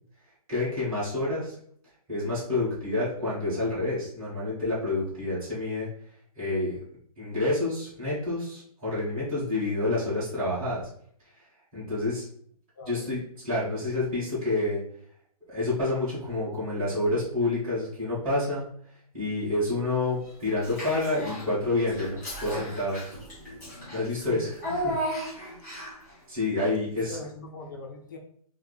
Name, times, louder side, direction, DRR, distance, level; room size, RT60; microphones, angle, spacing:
voice 1, 0.5-1.6 2.1-5.9 6.4-6.8 7.2-10.9 11.4-11.5 11.7-12.2 12.8-13.2 13.4-14.8 15.5-18.7 19.1-23.1 23.9-24.5 24.8-25.0 25.3-25.5 26.3-27.2, left 2 dB, 15° right, -13 dB, 1.8 m, -28 dB
voice 2, 12.8-13.1 24.1-24.5 27.1-28.2, left 3 dB, 30° left, 1 dB, 0.5 m, -40 dB
Child speech kid speaking / Bathtub (filling or washing), 20.6-21.5 21.9-26.1, equal, 10° left, 1.6 m, -34 dB
4.5 x 2.1 x 4.2 m, 0.63 s
hypercardioid pair, 175°, 20 cm